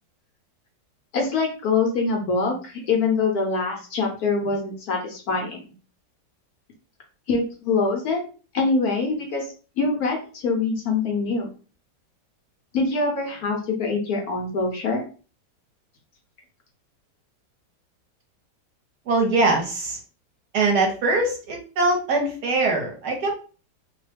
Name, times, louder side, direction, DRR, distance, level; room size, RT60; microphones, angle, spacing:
voice 1, 1.1-5.6 7.3-8.2 8.5-11.5 12.7-15.0, left 4 dB, 65° left, 1 dB, 1.0 m, -24 dB
voice 2, 19.1-20.0 20.5-23.4, right 3 dB, 65° right, 1 dB, 1.2 m, -22 dB
3.0 x 2.1 x 3.2 m, 0.37 s
omnidirectional pair, 2.0 m